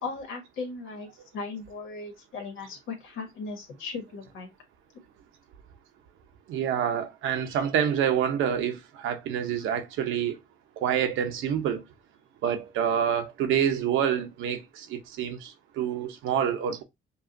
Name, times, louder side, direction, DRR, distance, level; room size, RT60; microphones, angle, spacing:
voice 1, 0.0-1.1 1.3-4.5, left 4 dB, 85° left, 1.5 m, -37 dB
voice 2, 6.5-10.4 10.8-11.8 12.4-16.8, right 9 dB, 90° right, 0.8 m, -27 dB
5.3 x 2.4 x 2.6 m
cardioid pair, 90°, 20 cm